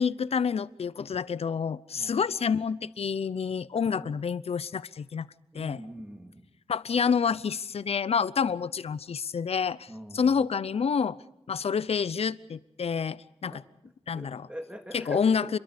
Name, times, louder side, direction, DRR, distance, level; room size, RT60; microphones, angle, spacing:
voice 1, 0.0-5.3 5.5-5.8 6.7-11.2 11.5-13.6 14.1-14.5 14.9-15.6, left 6 dB, 80° left, 18 dB, 0.7 m, -28 dB
voice 2, 5.5-6.4 9.9-10.3 13.5-13.6 14.1-15.3, equal, 10° right, 4 dB, 3.0 m, -42 dB
29.5 x 22.5 x 5.2 m, 0.84 s
wide cardioid pair, 115°, 10 cm